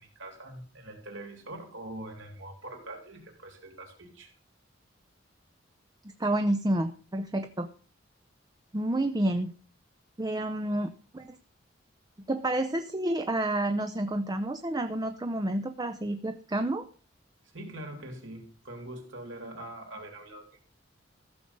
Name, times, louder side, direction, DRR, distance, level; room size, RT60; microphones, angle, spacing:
voice 1, 0.0-4.3 17.5-20.4, right 1 dB, 70° right, 2 dB, 3.6 m, -43 dB
voice 2, 6.2-7.7 8.7-9.5 10.2-11.4 12.3-16.8, right 1 dB, 20° right, 7 dB, 0.6 m, -29 dB
15.0 x 6.5 x 5.4 m, 0.37 s
head